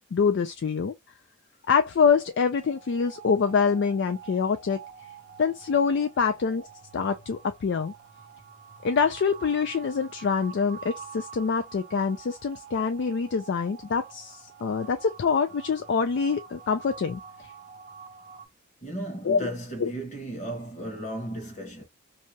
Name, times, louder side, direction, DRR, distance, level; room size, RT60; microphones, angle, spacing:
voice 1, 0.1-0.9 1.7-4.8 5.4-6.7 6.9-7.9 8.8-17.5 19.2-19.5 19.8-19.9, left 5 dB, 55° left, 0.3 m, -25 dB
sound 1, 1.8-18.5, right 6 dB, 45° right, 0.6 m, -47 dB
voice 2, 18.8-21.8, right 1 dB, 35° left, 1.1 m, -35 dB
2.7 x 2.2 x 2.7 m
head